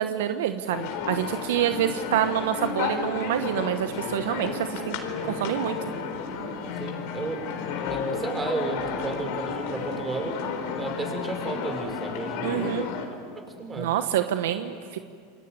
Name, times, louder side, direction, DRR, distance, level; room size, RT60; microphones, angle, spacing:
voice 1, 0.0-5.0 5.3-5.9 12.4-12.9 13.8-15.0, right 10 dB, 75° right, 9 dB, 1.1 m, -27 dB
sound 1, 0.7-13.1, left 6 dB, 65° left, 4.3 m, -32 dB
voice 2, 6.8-7.6 7.9-10.5 10.8-12.9 13.4-13.9, right 3 dB, 20° right, 4 dB, 5.8 m, -33 dB
27.5 x 22.0 x 9.7 m, 2.2 s
hypercardioid pair, 105°, 0 cm